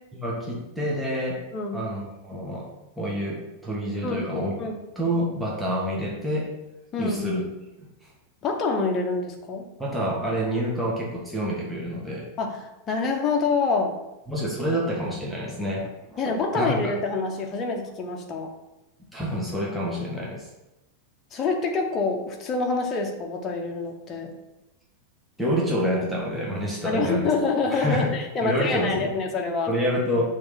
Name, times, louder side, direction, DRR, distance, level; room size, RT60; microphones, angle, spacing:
voice 1, 0.1-1.4 1.7-2.7 3.0-4.5 5.0-6.5 7.0-7.5 7.8-8.1 9.8-12.3 14.3-16.9 19.1-20.5 25.4-27.3 27.7-28.1 28.4-29.1 29.7-30.2, equal, 5° right, -5 dB, 1.7 m, -28 dB
voice 2, 1.5-1.8 4.0-4.2 4.6-4.8 6.9-7.3 8.4-9.6 12.4-13.9 16.2-18.5 21.3-24.3 26.8-29.7, left 4 dB, 25° left, 2 dB, 1.3 m, -26 dB
6.8 x 3.6 x 6.0 m, 0.96 s
figure-of-eight pair, 90°, 0 cm